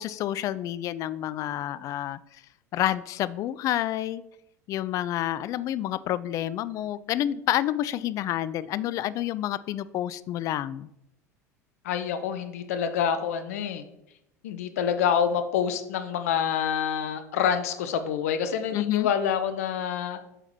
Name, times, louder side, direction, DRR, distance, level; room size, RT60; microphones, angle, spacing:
voice 1, 0.0-2.2 2.7-4.2 4.7-10.9 18.7-19.1, left 12 dB, 40° left, 17 dB, 0.3 m, -29 dB
voice 2, 11.8-13.8 14.4-20.2, left 8 dB, 60° left, 10 dB, 0.7 m, -27 dB
8.0 x 3.9 x 4.5 m, 0.84 s
figure-of-eight pair, 75°, 9 cm